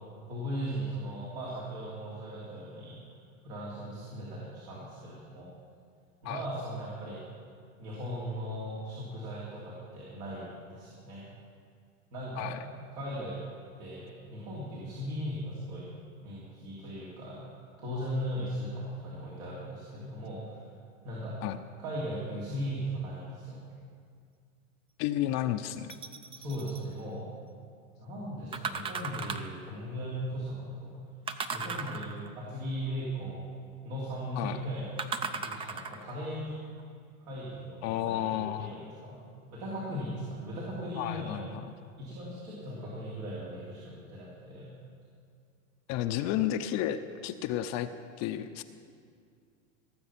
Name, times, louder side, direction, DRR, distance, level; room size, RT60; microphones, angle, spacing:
voice 1, 0.3-3.0 3.4-5.5 6.2-7.2 7.8-11.2 12.1-12.5 12.9-13.4 13.8-15.9 16.2-20.6 21.0-21.4 21.8-23.6 26.3-27.3 28.0-30.9 31.5-33.5 33.8-35.0 35.3-36.5 37.2-39.2 39.5-41.5 42.0-44.7, equal, 70° right, -6 dB, 3.2 m, -38 dB
voice 2, 25.0-26.0 34.4-34.6 37.8-38.7 41.0-41.8 45.9-47.9 48.2-48.6, left 12 dB, 40° left, 9 dB, 0.6 m, -32 dB
sound 1, 25.9-26.8 28.5-29.6 31.3-32.4 35.0-36.1 36.8-36.9, right 5 dB, 15° right, 0.4 m, -36 dB
17.0 x 7.8 x 5.8 m, 2.2 s
hypercardioid pair, 110°, 42 cm